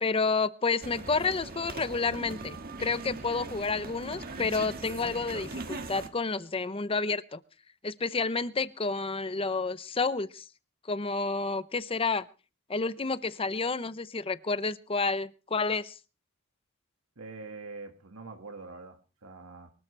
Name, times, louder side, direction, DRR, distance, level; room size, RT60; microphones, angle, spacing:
voice 1, 0.0-7.4 7.8-10.5 10.9-12.2 12.7-16.0, left 4 dB, 25° left, 15 dB, 0.7 m, -30 dB
sound 1, 0.8-6.1, right 3 dB, 45° right, 1.7 m, -40 dB
voice 2, 17.2-19.7, right 3 dB, 75° right, 4 dB, 1.8 m, -44 dB
23.5 x 13.5 x 3.3 m, 0.35 s
head